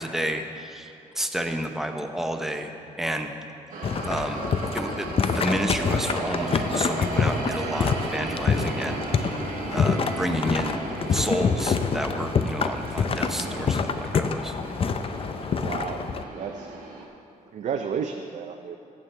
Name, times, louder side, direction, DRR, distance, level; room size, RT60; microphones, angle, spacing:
voice 1, 0.0-2.7 3.0-3.3 4.0-4.5 4.7-9.0 9.6-14.5, right 1 dB, 5° right, 5 dB, 0.7 m, -30 dB
sound 1, 3.7-17.1, right 3 dB, 85° right, 1.2 m, -35 dB
sound 2, 3.8-16.2, left 5 dB, 40° left, 0.5 m, -27 dB
Wind instrument woodwind instrument, 8.6-12.7, equal, 25° left, 2.1 m, -45 dB
voice 2, 15.6-16.0 16.4-16.7 17.5-18.8, right 7 dB, 60° right, 4 dB, 0.5 m, -31 dB
14.5 x 7.3 x 3.3 m, 2.7 s
cardioid pair, 85°, 14 cm